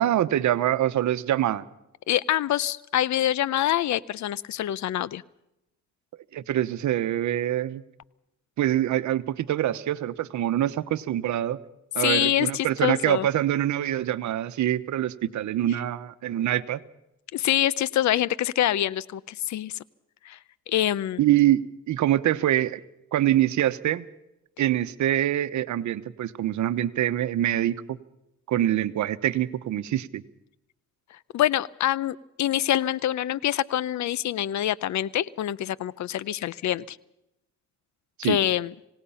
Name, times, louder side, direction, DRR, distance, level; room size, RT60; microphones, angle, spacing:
voice 1, 0.0-1.6 6.3-7.8 8.6-11.6 11.9-16.8 21.2-21.6 21.9-22.8 23.1-24.0 24.6-28.0 28.5-30.2 38.2-38.4, right 12 dB, 70° right, 14 dB, 1.1 m, -25 dB
voice 2, 2.1-5.2 12.0-13.3 17.3-19.8 20.2-20.4 20.7-21.2 31.1-37.0 38.2-38.7, left 12 dB, 70° left, 21 dB, 0.8 m, -25 dB
26.5 x 18.0 x 5.7 m, 0.87 s
cardioid pair, 90°, 30 cm